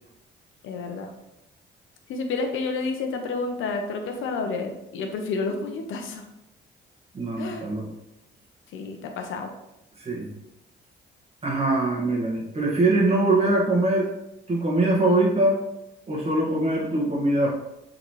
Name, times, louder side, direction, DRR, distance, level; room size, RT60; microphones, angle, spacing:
voice 1, 0.6-1.1 2.1-6.2 7.4-7.7 8.7-9.5 13.1-13.2, left 4 dB, 80° left, 5 dB, 1.0 m, -30 dB
voice 2, 7.1-7.9 10.0-10.3 11.4-14.1 14.5-15.6 16.1-17.5, right 2 dB, 30° right, -3 dB, 1.9 m, -22 dB
7.6 x 4.2 x 3.3 m, 0.88 s
cardioid pair, 90°, 20 cm